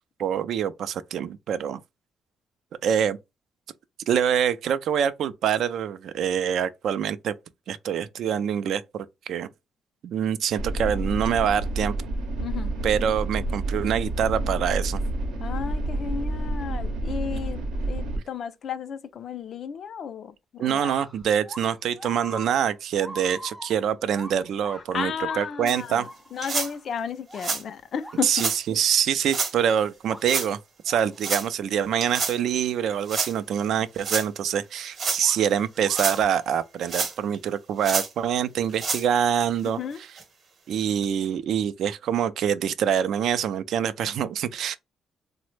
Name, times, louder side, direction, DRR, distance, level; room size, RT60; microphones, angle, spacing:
voice 1, 0.2-1.8 2.8-3.2 4.1-7.3 7.7-9.5 10.0-11.9 12.8-15.0 20.6-25.1 25.4-26.1 28.2-30.6 30.8-39.8 40.7-44.8, right 8 dB, 70° right, 0.3 m, -25 dB
sound 1, 10.6-18.2, right 1 dB, 85° right, 0.7 m, -29 dB
voice 2, 12.4-12.7 15.4-20.9 24.9-28.5 39.6-40.0, left 7 dB, 60° left, 0.4 m, -33 dB
sound 2, 20.6-28.6 29.2-29.3 30.0-30.4 30.9-31.2 33.6-33.7 35.2-36.2, equal, 5° right, 0.4 m, -42 dB
sound 3, 25.7-25.8 26.4-26.7 27.3-27.6 28.3-28.6 29.3-29.5 30.2-30.5 31.2-31.5 32.0-32.4 33.1-33.3 34.0-34.3 34.9-35.2 35.8-36.2 36.9-37.4 37.8-38.1 38.7-39.0 39.7-39.8 40.2-40.3 41.0-41.1, right 4 dB, 45° right, 0.8 m, -28 dB
3.0 x 2.0 x 3.1 m
cardioid pair, 90°, 0 cm